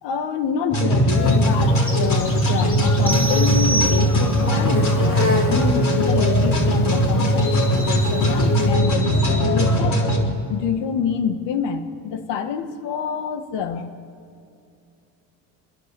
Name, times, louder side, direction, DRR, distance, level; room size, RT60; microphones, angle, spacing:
voice 1, 0.0-10.0 10.5-13.9, left 6 dB, 65° left, 8 dB, 1.7 m, -27 dB
sound 1, 0.7-10.2, equal, 45° left, 5.6 m, -19 dB
Insect, 1.1-8.7, left 3 dB, 30° left, 3.3 m, -32 dB
sound 2, 3.1-4.6, right 2 dB, 5° right, 2.3 m, -27 dB
28.5 x 11.0 x 8.4 m, 2.5 s
supercardioid pair, 75°, 45 cm